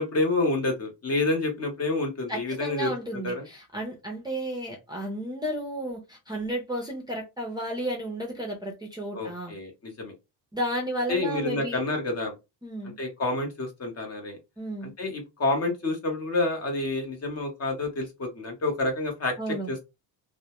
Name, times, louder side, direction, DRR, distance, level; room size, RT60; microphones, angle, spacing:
voice 1, 0.0-3.5 9.1-10.1 11.1-12.3 12.8-14.4 15.0-19.9, left 2 dB, 35° left, 0.8 m, -28 dB
voice 2, 2.3-9.5 10.5-11.8 12.6-13.0 14.6-14.9 19.4-19.7, right 1 dB, 10° right, 0.4 m, -33 dB
2.1 x 2.1 x 2.8 m
cardioid pair, 130°, 43 cm